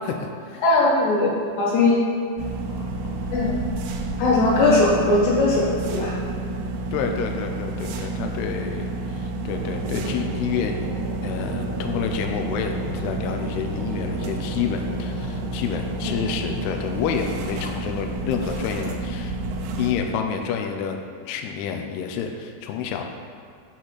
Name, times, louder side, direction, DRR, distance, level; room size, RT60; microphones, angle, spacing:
voice 1, 0.0-0.6 2.6-3.3 6.9-10.8 11.2-19.3 19.8-21.0 21.3-23.0, left 7 dB, 90° left, 4 dB, 2.3 m, -29 dB
voice 2, 0.6-1.3 1.6-2.0 3.3-3.5 4.2-6.1 16.0-16.1, left 2 dB, 70° left, -5 dB, 3.7 m, -19 dB
sound 1, 2.4-19.9, right 2 dB, 80° right, 2.8 m, -30 dB
sound 2, 9.5-16.7, right 1 dB, 65° right, 1.8 m, -35 dB
8.6 x 6.2 x 4.1 m, 2.3 s
omnidirectional pair, 5.3 m